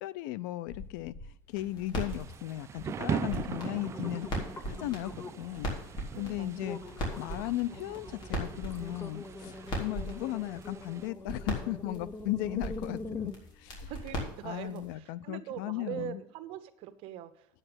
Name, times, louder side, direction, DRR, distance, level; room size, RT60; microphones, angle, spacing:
voice 1, 0.0-1.1 1.5-4.3 4.7-5.1 5.4-5.7 6.2-6.8 7.2-13.3 13.6-13.9 14.4-16.2, left 15 dB, 90° left, 20 dB, 0.5 m, -36 dB
sound 1, 0.7-1.3 1.7-2.2 2.8-2.9 3.3-5.5 6.0-6.2 6.6-14.1 14.6-14.7, left 2 dB, 20° left, 0.9 m, -44 dB
sound 2, 1.5-14.9, equal, 45° left, 3.9 m, -40 dB
Thunder / Rain, 2.1-11.1, right 8 dB, 25° right, 0.3 m, -41 dB
voice 2, 6.1-6.9 13.8-17.5, right 10 dB, 65° right, 10 dB, 1.0 m, -42 dB
8.9 x 6.6 x 8.1 m, 0.75 s
cardioid pair, 130°, 10 cm